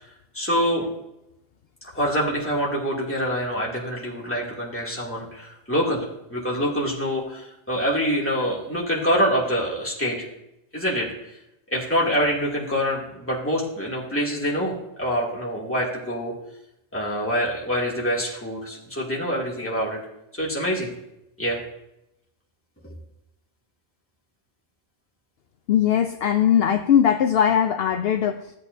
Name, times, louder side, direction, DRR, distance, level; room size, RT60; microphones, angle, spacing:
voice 1, 0.3-0.9 1.9-10.2 10.7-11.1 11.7-14.7 15.0-16.3 16.9-20.0 20.3-20.9 21.4-21.6, equal, 10° left, -5 dB, 2.4 m, -25 dB
voice 2, 25.7-28.5, left 9 dB, 65° left, 7 dB, 0.8 m, -20 dB
16.0 x 8.2 x 2.7 m, 0.86 s
omnidirectional pair, 1.2 m